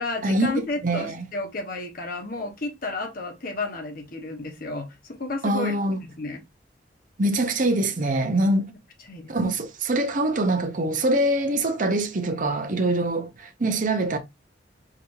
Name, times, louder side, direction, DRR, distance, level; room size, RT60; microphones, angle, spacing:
voice 1, 0.0-5.7 6.0-6.4 9.1-9.4, left 2 dB, 55° left, 1.2 m, -32 dB
voice 2, 0.8-1.2 5.4-6.0 7.2-8.7 9.3-14.2, right 1 dB, 45° right, 0.8 m, -24 dB
5.1 x 2.7 x 2.9 m
head